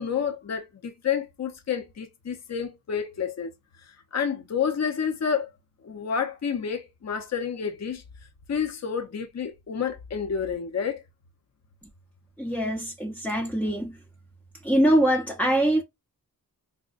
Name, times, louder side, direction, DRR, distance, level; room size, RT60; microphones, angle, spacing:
voice 1, 0.0-3.5 4.1-5.5 5.8-8.0 8.5-11.0, left 7 dB, 50° left, 0.7 m, -29 dB
voice 2, 12.4-14.0 14.6-15.8, right 1 dB, 5° left, 0.5 m, -23 dB
4.9 x 2.1 x 2.4 m
wide cardioid pair, 85°, 35 cm